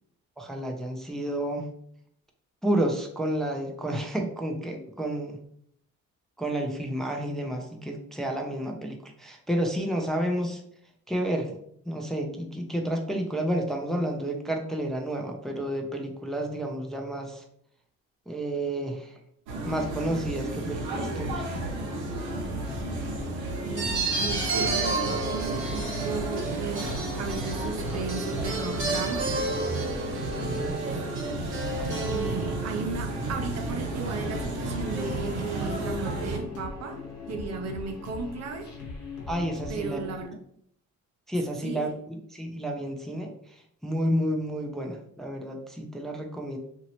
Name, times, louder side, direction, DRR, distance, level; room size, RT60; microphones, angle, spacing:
voice 1, 0.4-1.7 2.6-5.4 6.4-10.6 11.1-11.6 11.8-17.4 18.3-19.2 19.6-21.6 30.3-30.8 39.3-40.0 41.3-46.6, right 1 dB, ahead, 0.5 m, -30 dB
sound 1, 19.5-36.4, right 2 dB, 90° right, 0.8 m, -33 dB
sound 2, 21.2-40.3, left 4 dB, 80° left, 0.9 m, -40 dB
voice 2, 23.6-29.4 32.1-38.7 39.7-40.3 41.6-41.9, right 4 dB, 60° right, 0.6 m, -35 dB
sound 3, 23.8-32.9, right 3 dB, 40° right, 1.0 m, -32 dB
2.9 x 2.7 x 2.9 m
cardioid pair, 90°, 30 cm